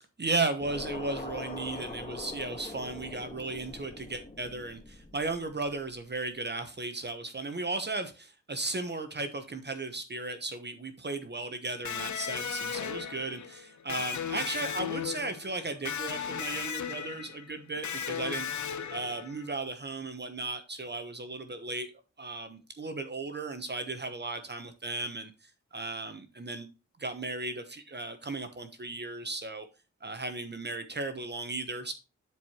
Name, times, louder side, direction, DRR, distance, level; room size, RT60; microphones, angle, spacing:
voice 1, 0.2-18.5 18.9-21.9 22.2-26.7 27.0-29.7 30.0-31.9, right 3 dB, 35° right, 1.0 m, -35 dB
sound 1, 0.6-5.9, left 2 dB, 25° left, 1.4 m, -43 dB
Electric guitar, 11.8-19.5, left 7 dB, 75° left, 0.8 m, -36 dB
10.5 x 4.8 x 2.9 m
cardioid pair, 70°, 30 cm